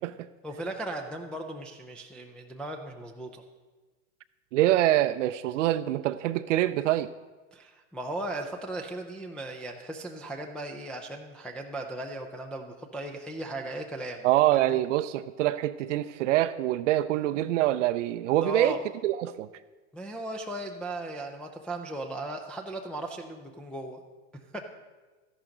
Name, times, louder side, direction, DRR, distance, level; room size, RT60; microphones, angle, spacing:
voice 1, 0.4-3.4 7.5-14.3 14.5-14.8 18.4-18.8 19.9-24.0 24.5-24.7, right 1 dB, 5° left, 0 dB, 0.3 m, -37 dB
voice 2, 4.5-7.1 14.2-19.5, right 14 dB, 70° right, 10 dB, 0.5 m, -25 dB
13.0 x 11.0 x 3.8 m, 1.3 s
hypercardioid pair, 120°, 38 cm